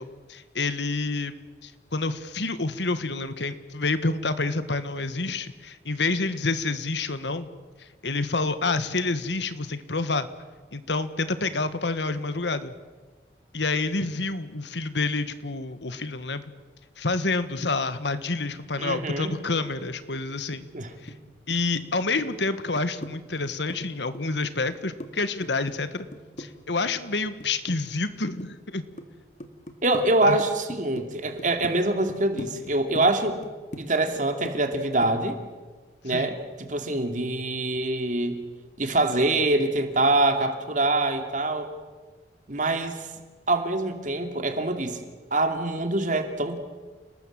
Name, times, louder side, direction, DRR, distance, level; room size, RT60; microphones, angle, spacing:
voice 1, 0.0-1.3 1.6-7.5 7.8-10.3 10.7-12.7 13.5-16.4 17.0-20.6 21.0-21.1 21.5-26.1 26.4-28.8 30.2-30.4 36.1-36.3, left 3 dB, 85° left, 12 dB, 1.6 m, -28 dB
voice 2, 18.8-19.4 20.7-20.9 29.8-33.4 33.8-35.4 36.0-38.4 38.8-41.7 42.5-43.1 43.5-45.0 45.3-46.6, right 2 dB, 45° right, 6 dB, 2.7 m, -25 dB
sound 1, 20.5-21.2 21.5-23.1 23.4-25.1 25.4-28.1 28.4-29.1 29.4-30.1 30.4-31.1 31.4-31.7 32.1-34.8 35.0-35.2, equal, 45° left, 2.2 m, -39 dB
29.5 x 19.5 x 7.7 m, 1.4 s
head